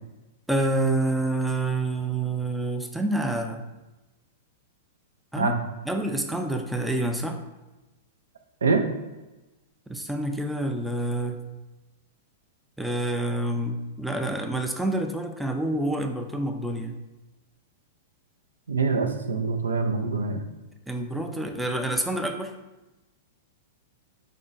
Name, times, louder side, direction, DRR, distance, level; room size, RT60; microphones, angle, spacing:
voice 1, 0.5-3.6 5.3-5.5 5.9-7.4 9.9-11.4 12.8-17.0 20.9-22.5, right 1 dB, 5° right, 4 dB, 0.4 m, -27 dB
voice 2, 18.7-20.4, right 4 dB, 90° right, 5 dB, 0.4 m, -24 dB
3.5 x 2.1 x 3.9 m, 1.1 s
hypercardioid pair, 115°, 0 cm